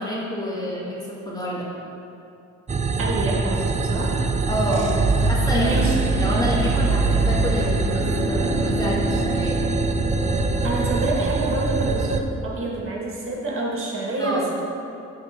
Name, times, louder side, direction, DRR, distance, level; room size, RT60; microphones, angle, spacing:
voice 1, 0.0-1.7 4.5-4.9 5.2-5.7 6.1-9.6 14.2-14.5, equal, 15° left, -6 dB, 2.2 m, -28 dB
sound 1, 2.7-12.2, right 3 dB, 25° right, 0.5 m, -24 dB
voice 2, 3.0-4.3 5.5-6.2 10.4-14.5, right 2 dB, 45° right, -3 dB, 2.2 m, -27 dB
sound 2, 4.7-11.3, right 2 dB, 60° right, 1.7 m, -26 dB
12.5 x 4.2 x 5.3 m, 2.6 s
cardioid pair, 90°, 30 cm